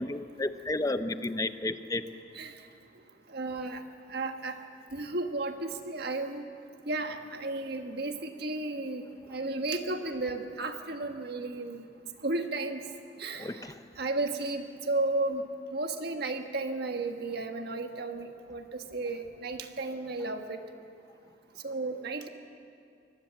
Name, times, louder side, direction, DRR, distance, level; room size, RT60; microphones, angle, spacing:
voice 1, 0.0-2.0 13.4-13.7, left 2 dB, 20° left, 11 dB, 0.7 m, -32 dB
voice 2, 3.3-3.8 4.1-4.6 4.9-6.5 6.9-9.0 9.3-11.9 12.2-12.8 13.2-13.5 14.0-15.4 15.7-18.6 18.9-20.6 21.6-22.3, right 2 dB, 60° right, 6 dB, 1.5 m, -33 dB
24.0 x 19.0 x 7.6 m, 2.4 s
head